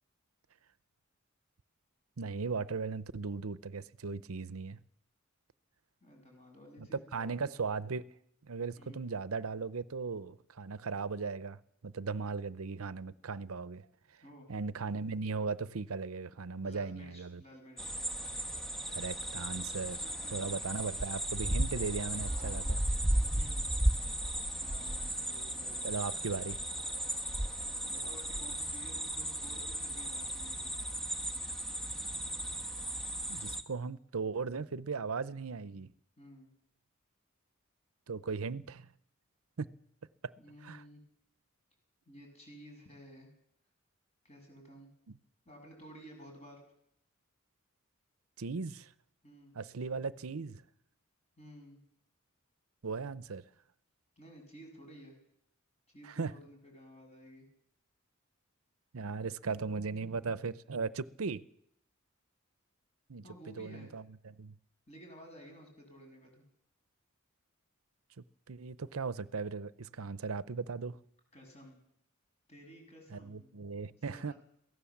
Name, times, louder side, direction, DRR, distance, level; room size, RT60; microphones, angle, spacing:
voice 1, 2.2-4.8 6.8-8.0 8.5-13.9 14.5-17.4 18.9-20.0 20.3-22.8 25.8-26.6 33.3-35.9 38.1-38.9 39.6-39.7 40.2-40.3 40.6-40.8 48.4-48.9 49.5-50.6 52.8-53.4 56.0-56.3 58.9-61.4 63.1-64.5 68.5-71.0 73.1-74.3, right 4 dB, 90° right, 0.7 m, -37 dB
voice 2, 6.0-7.3 8.8-9.0 14.2-14.5 16.6-17.9 20.0-20.6 22.1-23.7 24.6-25.9 27.8-30.7 36.2-36.5 40.4-41.0 42.1-43.3 44.2-44.9 45.5-46.6 49.2-49.5 51.4-51.8 54.2-55.1 55.9-57.5 63.2-63.9 64.9-66.4 71.3-71.8 72.5-73.7 74.1-74.3, equal, 30° left, 7.5 m, -53 dB
sound 1, 17.8-33.6, right 1 dB, ahead, 1.2 m, -35 dB
23.0 x 16.5 x 7.3 m
head